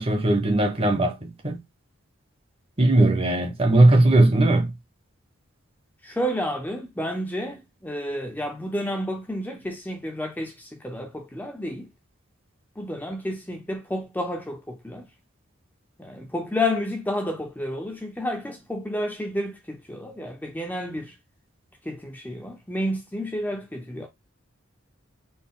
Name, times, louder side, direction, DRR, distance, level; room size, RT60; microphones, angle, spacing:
voice 1, 0.0-1.6 2.8-4.7, right 2 dB, 25° right, 0.8 m, -19 dB
voice 2, 6.0-11.9 12.8-15.1 16.0-21.1 21.8-24.1, left 1 dB, 10° left, 0.5 m, -30 dB
4.2 x 2.1 x 3.7 m
head